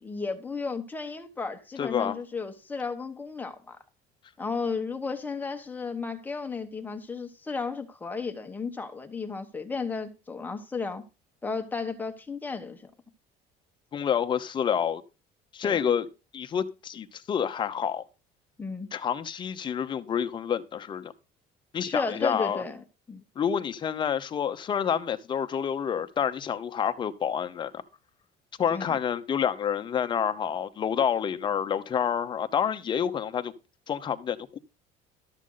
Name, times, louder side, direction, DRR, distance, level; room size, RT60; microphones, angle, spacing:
voice 1, 0.0-3.8 4.4-11.0 11.4-12.9 15.6-15.8 18.6-18.9 21.8-23.2 28.7-29.0, left 4 dB, 10° left, 1.1 m, -34 dB
voice 2, 1.8-2.2 13.9-15.0 15.5-16.1 16.3-18.0 18.9-21.1 21.7-22.6 23.4-27.8 28.6-33.5 33.9-34.6, left 8 dB, 25° left, 0.8 m, -28 dB
12.5 x 7.5 x 3.9 m
cardioid pair, 175°, 18 cm